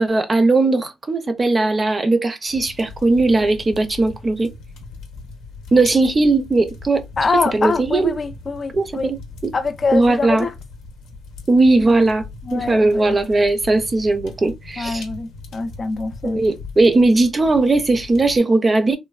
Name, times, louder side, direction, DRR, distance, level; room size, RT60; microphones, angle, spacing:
voice 1, 0.0-4.5 5.7-7.0 7.5-8.1 8.7-9.5 9.9-10.5 11.5-12.2 12.5-15.0 16.2-19.0, right 2 dB, 30° right, 0.5 m, -18 dB
sound 1, 2.5-18.4, left 3 dB, 85° left, 0.7 m, -39 dB
voice 2, 7.2-9.1 9.5-10.5 12.4-13.2 14.8-16.4, left 4 dB, 35° left, 0.4 m, -24 dB
3.1 x 2.2 x 2.3 m
cardioid pair, 90°, 0 cm